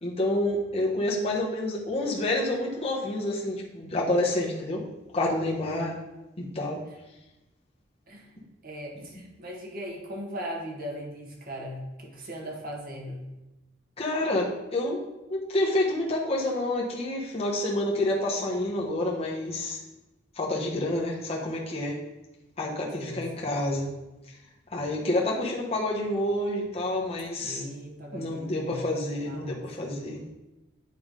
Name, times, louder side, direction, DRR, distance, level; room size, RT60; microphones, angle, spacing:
voice 1, 0.0-4.8 5.1-5.9 6.4-6.8 14.0-19.8 20.4-22.0 22.6-23.9 24.7-27.6 28.1-30.2, left 1 dB, 35° left, -4 dB, 1.2 m, -28 dB
voice 2, 8.6-13.3 23.0-23.8 27.4-29.7, equal, 50° right, -1 dB, 1.6 m, -39 dB
9.5 x 3.5 x 5.2 m, 1.0 s
head